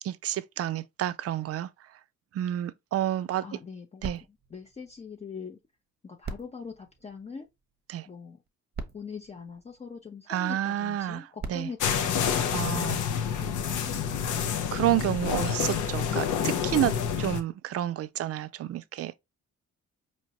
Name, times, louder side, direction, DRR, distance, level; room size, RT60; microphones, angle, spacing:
voice 1, 0.0-1.7 2.3-3.4 4.0-4.2 7.9-8.1 10.3-11.7 12.5-13.0 14.7-19.2, right 12 dB, 50° right, 0.4 m, -30 dB
voice 2, 3.4-4.2 4.5-5.6 6.0-7.5 8.1-8.4 8.9-13.1 13.4-13.9, left 5 dB, 20° left, 0.6 m, -42 dB
sound 1, 4.0-5.7 6.2-7.8 8.5-8.6 8.7-10.3 11.1-13.0 13.7-13.8, right 4 dB, 35° right, 0.8 m, -43 dB
sound 2, 11.8-17.4, left 7 dB, 75° left, 0.8 m, -28 dB
4.4 x 3.0 x 2.8 m
cardioid pair, 90°, 30 cm